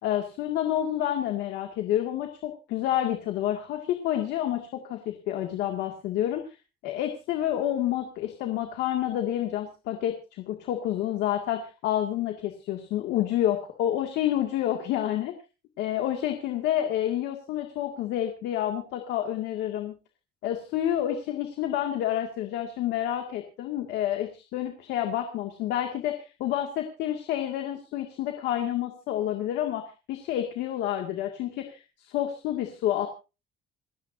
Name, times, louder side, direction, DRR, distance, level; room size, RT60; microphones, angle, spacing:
voice 1, 0.0-6.5 6.8-10.2 10.5-15.3 15.8-19.9 20.4-33.1, left 11 dB, 85° left, 4 dB, 2.0 m, -29 dB
28.0 x 9.5 x 2.6 m, 0.30 s
cardioid pair, 110°, 17 cm